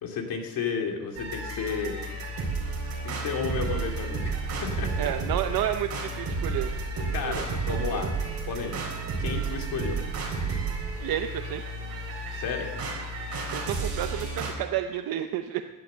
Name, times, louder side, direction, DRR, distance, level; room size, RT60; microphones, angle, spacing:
voice 1, 0.0-2.0 2.8-4.9 5.5-5.6 7.1-8.1 8.5-8.8 9.2-10.0 12.3-12.7, left 6 dB, 70° left, 2 dB, 2.7 m, -32 dB
sound 1, 1.2-14.5, right 3 dB, 45° right, 4.0 m, -32 dB
voice 2, 5.0-8.1 11.0-11.6 13.5-15.7, right 11 dB, 75° right, 7 dB, 0.8 m, -31 dB
15.0 x 11.0 x 6.8 m, 1.2 s
cardioid pair, 165°, 36 cm